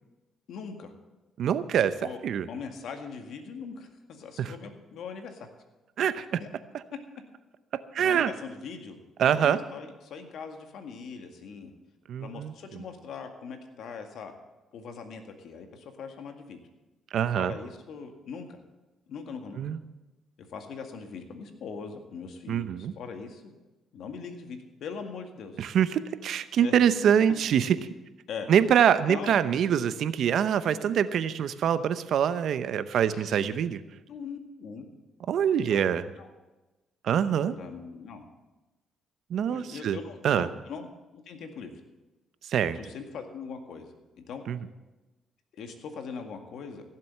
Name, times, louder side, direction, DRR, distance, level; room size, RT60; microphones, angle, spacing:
voice 1, 0.5-0.9 1.8-2.2 2.5-5.5 6.4-6.5 8.0-9.0 9.3-11.7 12.2-14.3 14.7-16.6 17.3-18.6 19.1-19.6 20.5-23.5 23.9-25.6 26.6-26.8 28.3-28.5 29.1-29.4 32.9-33.4 34.1-34.9 35.7-36.3 37.5-38.3 39.5-40.9 41.1-41.7 42.7-44.4 45.5-46.8, left 5 dB, 75° left, 5 dB, 1.9 m, -41 dB
voice 2, 1.4-1.9 2.2-2.5 4.4-4.5 6.0-6.4 7.9-8.3 9.2-9.6 12.1-12.8 17.1-17.6 19.6-19.8 22.5-22.9 25.6-27.8 28.5-33.8 35.3-36.0 37.0-37.5 39.3-40.0 40.2-40.5 42.5-42.8 44.5-44.6, right 9 dB, 70° right, 13 dB, 0.7 m, -24 dB
16.0 x 7.6 x 7.6 m, 1.1 s
cardioid pair, 90°, 0 cm